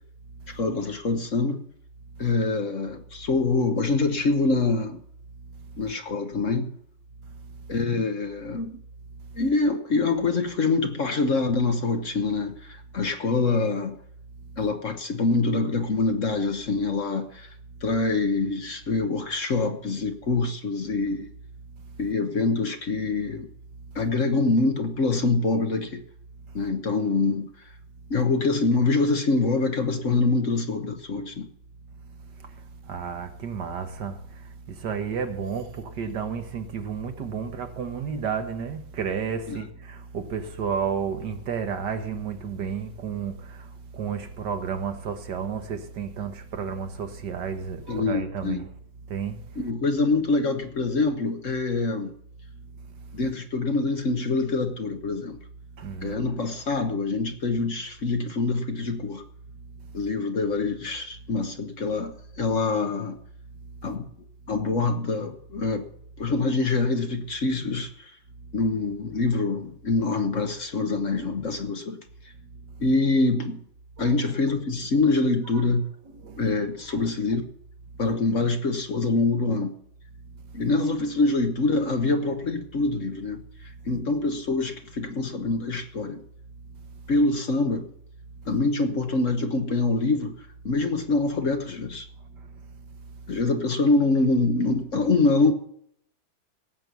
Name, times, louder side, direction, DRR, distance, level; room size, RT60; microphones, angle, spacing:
voice 1, 0.5-1.7 2.2-5.0 5.8-6.7 7.7-8.8 9.4-14.0 14.6-17.5 17.8-21.3 22.0-23.5 23.9-26.0 26.5-27.5 28.1-31.5 39.5-39.6 47.9-48.6 49.6-52.1 53.1-55.4 56.0-59.2 59.9-63.2 63.8-64.1 64.5-65.9 66.2-68.1 68.5-72.0 72.8-73.6 74.0-75.9 76.4-77.4 78.0-79.7 80.5-86.2 87.1-87.9 88.5-90.4 90.6-92.1 93.3-95.5, left 3 dB, 50° left, 1.2 m, -25 dB
voice 2, 32.9-34.2 34.7-43.7 43.9-48.7 49.1-49.4 55.8-56.3 74.0-74.2 75.5-75.6 76.1-76.4 76.9-77.0, right 6 dB, 70° right, 1.8 m, -32 dB
17.5 x 7.8 x 6.8 m
omnidirectional pair, 2.0 m